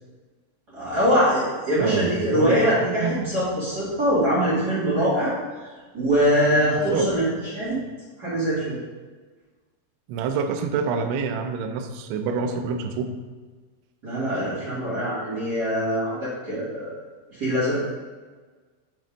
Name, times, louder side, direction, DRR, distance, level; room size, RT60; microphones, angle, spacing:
voice 1, 0.7-5.3 5.9-7.3 7.5-7.8 8.2-8.8 14.0-16.9 17.3-17.8, equal, 30° right, -10 dB, 2.0 m, -23 dB
voice 2, 1.8-2.7 2.9-3.2 6.8-7.1 10.1-13.2, right 5 dB, 80° right, 5 dB, 2.8 m, -27 dB
7.5 x 5.9 x 5.2 m, 1.4 s
omnidirectional pair, 5.9 m